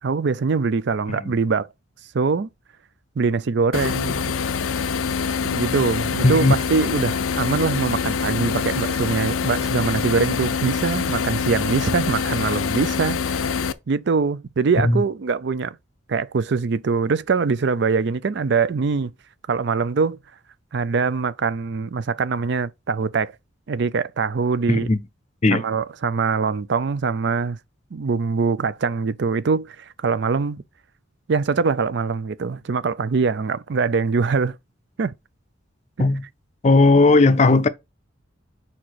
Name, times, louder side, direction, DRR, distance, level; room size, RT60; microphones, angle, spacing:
voice 1, 0.0-1.7 2.1-2.5 3.2-4.2 5.4-13.5 13.9-15.8 16.1-19.1 19.5-20.2 20.7-23.3 23.7-24.9 25.5-27.6 27.9-30.6 31.3-34.6 35.0-35.1, right 4 dB, 55° right, 0.4 m, -23 dB
sound 1, 3.7-13.7, left 6 dB, 85° left, 0.5 m, -25 dB
voice 2, 6.2-6.5 14.8-15.0 24.7-25.0 25.4-25.6 36.0-36.2 36.6-37.7, left 3 dB, 35° left, 0.5 m, -16 dB
4.9 x 4.3 x 4.6 m
head